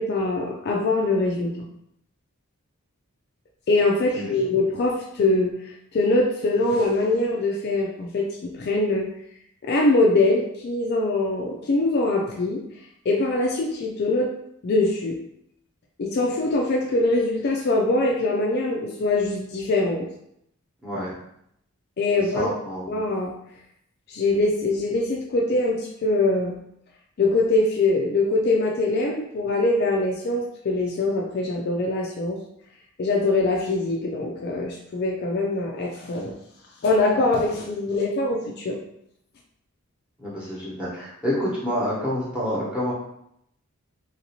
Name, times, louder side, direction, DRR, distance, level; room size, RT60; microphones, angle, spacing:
voice 1, 0.0-1.5 3.7-5.5 5.9-9.1 9.6-12.6 13.1-14.3 14.6-15.2 16.0-20.1 22.0-22.5 22.9-23.3 24.1-26.5 27.2-32.4 33.0-36.3 36.8-38.8, left 2 dB, 45° left, 0 dB, 0.3 m, -23 dB
voice 2, 20.8-21.1 22.3-23.0 40.2-42.9, equal, 5° right, -7 dB, 0.9 m, -28 dB
3.1 x 2.7 x 2.9 m, 0.76 s
head